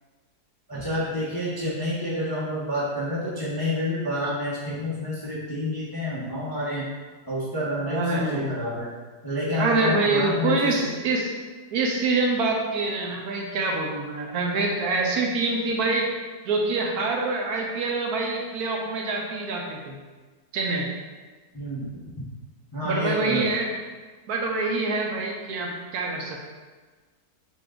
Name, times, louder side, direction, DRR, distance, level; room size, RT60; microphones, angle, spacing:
voice 1, 0.7-6.9 7.3-8.9 9.2-10.9 21.5-22.1 22.7-23.5, left 1 dB, 20° left, -8 dB, 0.7 m, -29 dB
voice 2, 7.8-8.6 9.6-11.3 11.7-16.1 16.4-20.0 20.5-20.9 22.8-23.7 24.3-26.5, right 3 dB, 70° right, 0 dB, 1.1 m, -25 dB
5.9 x 2.3 x 3.6 m, 1.4 s
omnidirectional pair, 1.7 m